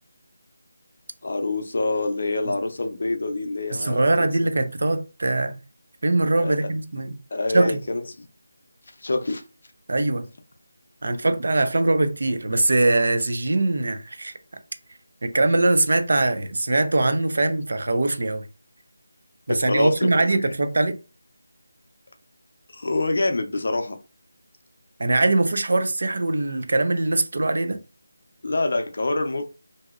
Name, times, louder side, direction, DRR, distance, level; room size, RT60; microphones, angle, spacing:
voice 1, 1.2-4.5 6.3-6.7 7.3-8.3 9.0-9.4 19.5-20.5 22.7-24.0 28.4-29.4, left 2 dB, 55° left, 0.5 m, -26 dB
voice 2, 3.7-5.6 6.0-7.1 7.5-7.8 9.9-10.3 11.0-14.3 15.2-18.5 19.5-21.0 25.0-27.8, right 2 dB, 60° right, 0.5 m, -22 dB
2.8 x 2.6 x 2.4 m
figure-of-eight pair, 170°, 0 cm